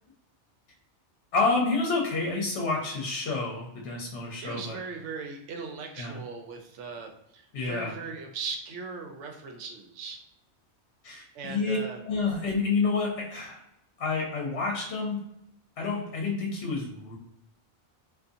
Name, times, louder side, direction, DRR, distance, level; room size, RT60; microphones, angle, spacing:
voice 1, 1.3-4.8 6.0-6.2 7.5-7.9 11.0-11.8 12.0-13.6 14.0-15.2 15.8-17.2, left 4 dB, 70° left, -2 dB, 0.9 m, -29 dB
voice 2, 4.4-10.2 11.3-12.0, right 4 dB, 85° right, 3 dB, 0.9 m, -39 dB
2.6 x 2.4 x 2.4 m, 0.80 s
omnidirectional pair, 1.2 m